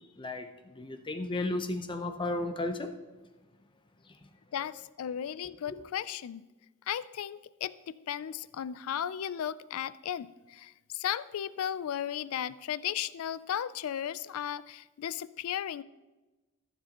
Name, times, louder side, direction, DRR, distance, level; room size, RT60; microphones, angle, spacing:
voice 1, 0.2-0.5 0.8-2.9 5.7-5.8, left 2 dB, 20° left, 7 dB, 0.7 m, -33 dB
voice 2, 4.5-6.4 6.9-7.7 8.1-15.8, left 9 dB, 70° left, 17 dB, 0.3 m, -35 dB
14.5 x 7.4 x 2.9 m, 1.1 s
head